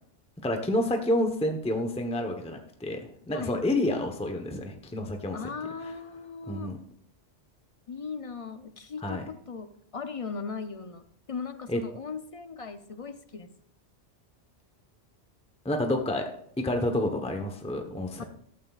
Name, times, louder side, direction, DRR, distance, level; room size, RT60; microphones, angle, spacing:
voice 1, 0.4-5.4 6.5-6.8 9.0-9.2 11.7-11.8 15.6-16.3 16.6-18.2, left 1 dB, 5° left, 4 dB, 0.9 m, -29 dB
voice 2, 5.3-6.8 7.9-13.5 18.2-18.3, left 5 dB, 40° left, 9 dB, 0.6 m, -38 dB
14.0 x 13.0 x 2.4 m, 0.66 s
omnidirectional pair, 1.2 m